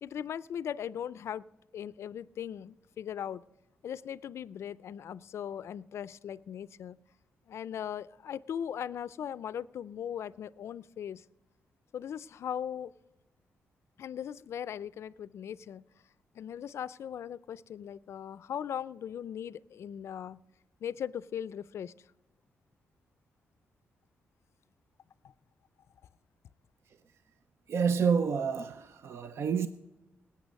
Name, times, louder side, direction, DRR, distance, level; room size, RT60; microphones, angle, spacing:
voice 1, 0.0-1.4 1.7-3.4 3.8-7.0 7.5-11.2 11.9-12.9 14.0-15.8 16.3-20.4 20.8-21.9, left 9 dB, 70° left, 0.4 m, -39 dB
voice 2, 27.7-29.7, right 6 dB, 65° right, 0.6 m, -28 dB
19.5 x 8.5 x 5.2 m
cardioid pair, 95°, 5 cm